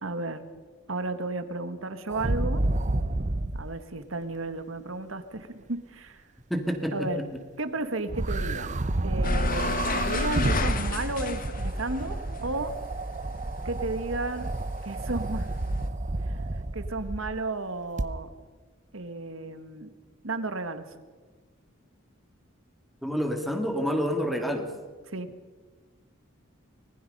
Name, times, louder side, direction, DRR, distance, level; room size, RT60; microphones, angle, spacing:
voice 1, 0.0-0.5 0.9-2.6 3.5-6.2 6.9-7.2 7.6-8.8 9.0-12.7 13.6-14.5 14.8-15.5 16.7-18.3 18.9-19.9 20.2-20.9 25.1-25.3, right 2 dB, 75° right, 10 dB, 1.7 m, -33 dB
sound 1, 2.1-3.7 8.1-17.4 18.0-18.1, right 2 dB, 35° right, 0.8 m, -30 dB
voice 2, 6.5-7.3 23.0-24.7, equal, ahead, 3 dB, 2.2 m, -28 dB
sound 2, 9.2-13.9 14.2-15.8, left 3 dB, 45° left, 1.5 m, -31 dB
25.5 x 20.0 x 5.5 m, 1.4 s
head